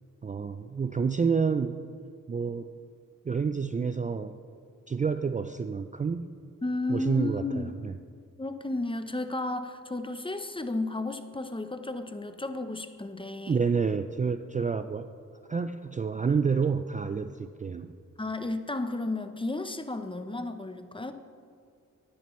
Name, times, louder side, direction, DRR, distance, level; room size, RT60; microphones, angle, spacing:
voice 1, 0.2-1.8 2.3-2.7 3.2-4.4 4.9-6.3 6.9-8.0 13.5-15.1 15.5-18.0, right 5 dB, 25° right, 9 dB, 0.3 m, -28 dB
voice 2, 6.6-7.7 8.4-13.6 18.2-21.1, left 2 dB, 15° left, 8 dB, 0.7 m, -33 dB
11.0 x 10.0 x 3.1 m, 2.3 s
cardioid pair, 50°, 32 cm